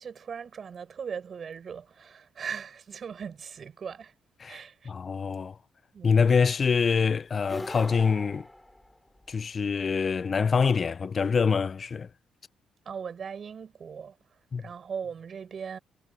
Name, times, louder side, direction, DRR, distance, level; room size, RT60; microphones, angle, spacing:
voice 1, 0.0-4.1 4.5-4.9 5.9-6.2 12.8-14.2 14.6-15.8, right 6 dB, 50° right, 8.0 m, -39 dB
voice 2, 4.4-5.6 6.0-8.5 9.3-12.1 14.5-14.6, left 5 dB, 45° left, 0.7 m, -25 dB
sound 1, 7.4-9.4, left 1 dB, 10° left, 5.5 m, -41 dB
supercardioid pair, 60°, 0 cm